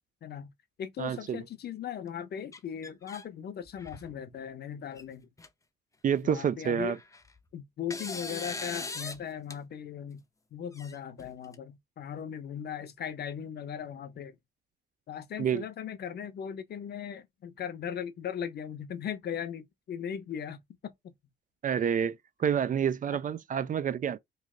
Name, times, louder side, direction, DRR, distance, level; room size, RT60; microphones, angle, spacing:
voice 1, 0.2-0.5 0.8-5.3 6.2-7.0 7.5-10.2 10.5-14.4 15.1-20.6 20.8-21.1 23.1-23.2, left 8 dB, 55° left, 0.7 m, -38 dB
voice 2, 1.0-1.4 6.0-7.0 15.4-15.6 21.6-24.2, right 8 dB, 40° right, 0.4 m, -28 dB
sound 1, 2.5-3.3 3.7-4.1 5.0-5.1 5.4-5.5 6.8-7.4 7.9-9.2 9.5-9.6 10.7-11.6, left 3 dB, 15° left, 0.6 m, -40 dB
3.2 x 2.5 x 3.7 m
cardioid pair, 90°, 20 cm